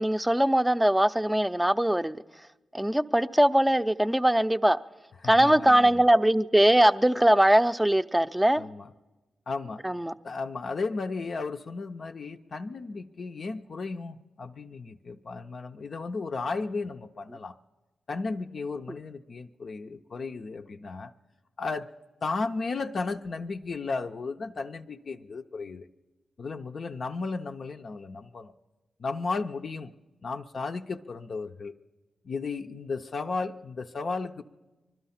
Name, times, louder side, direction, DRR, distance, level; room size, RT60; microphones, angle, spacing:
voice 1, 0.0-2.2 2.7-4.8 5.2-8.6 9.8-10.1, right 1 dB, 10° right, 0.5 m, -21 dB
voice 2, 5.2-6.0 8.6-8.9 9.5-9.8 10.2-17.6 18.1-21.1 21.6-21.9 22.2-25.9 26.4-28.5 29.0-29.9 30.2-31.7 32.2-34.4, left 4 dB, 60° left, 0.5 m, -34 dB
21.0 x 12.0 x 5.7 m
supercardioid pair, 45°, 0 cm